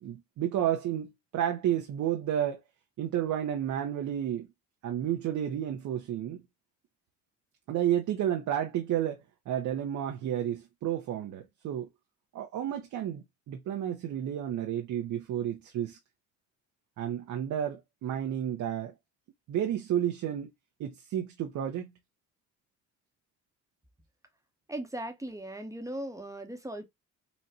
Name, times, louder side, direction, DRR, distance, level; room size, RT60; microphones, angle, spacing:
voice 1, 0.0-2.6 3.0-4.5 4.8-6.4 7.7-11.9 12.3-16.0 17.0-18.9 19.5-20.5 20.8-21.9, right 10 dB, 70° right, 0.7 m, -31 dB
voice 2, 24.7-26.8, right 1 dB, 10° right, 0.8 m, -38 dB
4.1 x 2.1 x 2.6 m
cardioid pair, 90°, 30 cm